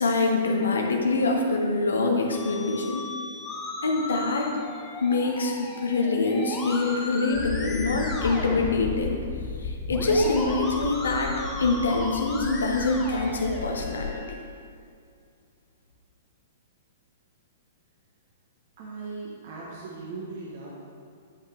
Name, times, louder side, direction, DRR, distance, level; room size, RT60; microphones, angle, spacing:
voice 1, 0.0-3.1 3.8-4.6 5.0-9.2 9.6-14.1, left 3 dB, 85° left, 2 dB, 1.0 m, -25 dB
Musical instrument, 2.3-14.3, left 2 dB, 15° left, 1.2 m, -36 dB
sound 1, 7.3-14.1, left 5 dB, 45° left, 0.7 m, -35 dB
voice 2, 18.8-20.8, right 3 dB, 55° right, -5 dB, 1.4 m, -38 dB
10.0 x 5.7 x 3.4 m, 2.3 s
hypercardioid pair, 120°, 0 cm